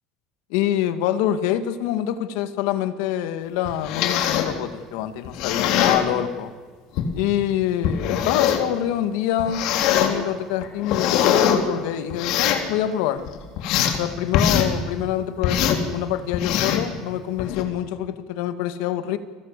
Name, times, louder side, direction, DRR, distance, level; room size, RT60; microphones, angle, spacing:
voice 1, 0.5-6.5 7.1-13.2 14.0-15.6 15.9-19.2, left 11 dB, 75° left, 10 dB, 1.9 m, -25 dB
sound 1, 3.7-4.5 5.2-6.0 7.0-7.1 7.8-8.7 9.4-10.1 10.6-11.6 12.1-12.7 13.2-14.0 14.3-14.7 15.4-15.8 16.3-16.9 17.4-17.6, left 9 dB, 60° left, 3.4 m, -22 dB
29.5 x 21.5 x 8.3 m, 1.5 s
cardioid pair, 170°, 0 cm